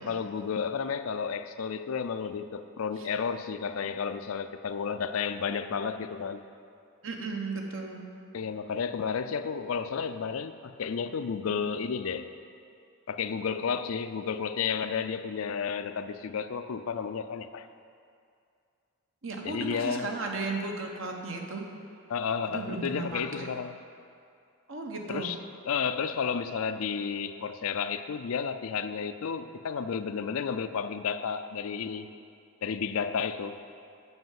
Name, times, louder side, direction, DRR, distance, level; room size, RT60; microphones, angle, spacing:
voice 1, 0.0-6.4 8.3-12.3 13.1-17.7 19.4-20.1 22.1-23.8 25.1-25.4 25.7-32.1 32.6-33.6, left 6 dB, 75° left, 10 dB, 0.4 m, -32 dB
voice 2, 7.0-8.0 19.2-21.7 22.5-23.5 24.7-25.3, right 3 dB, 65° right, 2 dB, 1.1 m, -35 dB
7.8 x 5.5 x 7.6 m, 2.4 s
head